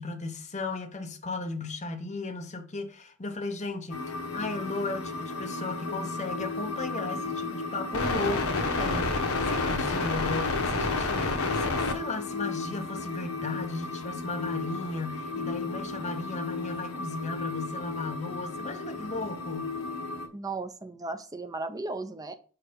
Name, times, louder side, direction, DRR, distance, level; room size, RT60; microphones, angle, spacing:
voice 1, 0.0-19.8, left 3 dB, 30° left, 0.9 m, -36 dB
sound 1, 3.9-20.3, left 3 dB, 75° left, 1.0 m, -32 dB
voice 2, 20.3-22.3, right 3 dB, 15° right, 0.6 m, -35 dB
4.9 x 4.6 x 5.1 m
head